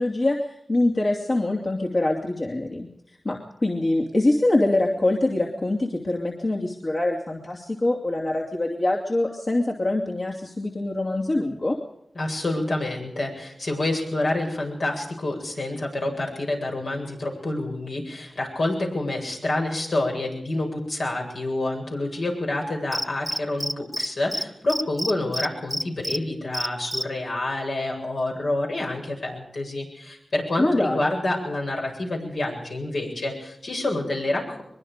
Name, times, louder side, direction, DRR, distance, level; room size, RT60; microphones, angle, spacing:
voice 1, 0.0-11.8 30.6-31.0, left 2 dB, 50° left, -1 dB, 2.8 m, -24 dB
voice 2, 12.1-34.6, left 2 dB, 75° left, 0 dB, 8.0 m, -28 dB
Cricket, 22.9-24.1 24.3-24.4 24.7-26.2 26.5-27.0, equal, 5° right, 1.0 m, -27 dB
23.5 x 22.5 x 5.1 m, 0.77 s
wide cardioid pair, 65°, 0 cm